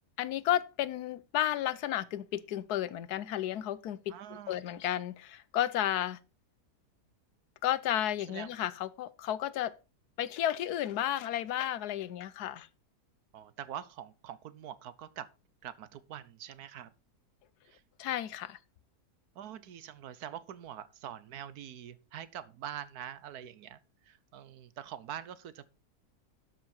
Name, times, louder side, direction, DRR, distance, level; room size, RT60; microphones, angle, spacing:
voice 1, 0.2-4.1 4.5-6.2 7.6-9.7 10.2-12.7 18.0-18.6, left 12 dB, 80° left, 1.2 m, -32 dB
voice 2, 4.1-4.6 8.3-8.5 13.3-15.3 15.6-16.9 17.6-17.8 19.4-23.8 24.0-25.7, right 10 dB, 75° right, 1.3 m, -44 dB
12.5 x 5.9 x 4.4 m
omnidirectional pair, 1.7 m